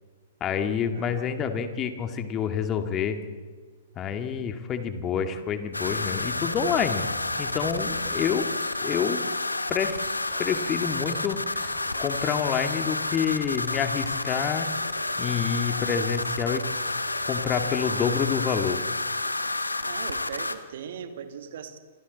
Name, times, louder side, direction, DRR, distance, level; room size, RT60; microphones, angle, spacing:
voice 1, 0.4-3.2 4.0-7.1 7.4-8.4 8.8-9.2 9.7-10.1 10.4-14.7 15.2-16.7 17.2-18.8, left 7 dB, 25° left, 7 dB, 2.2 m, -28 dB
voice 2, 0.9-1.4 7.9-8.1 19.8-21.8, right 7 dB, 55° right, 8 dB, 2.2 m, -40 dB
sound 1, 5.7-20.5, left 2 dB, 85° left, 1.3 m, -30 dB
sound 2, 5.8-9.1 10.0-18.4, right 4 dB, 30° right, 6.1 m, -48 dB
28.0 x 25.5 x 4.2 m, 1.5 s
figure-of-eight pair, 110°, 0 cm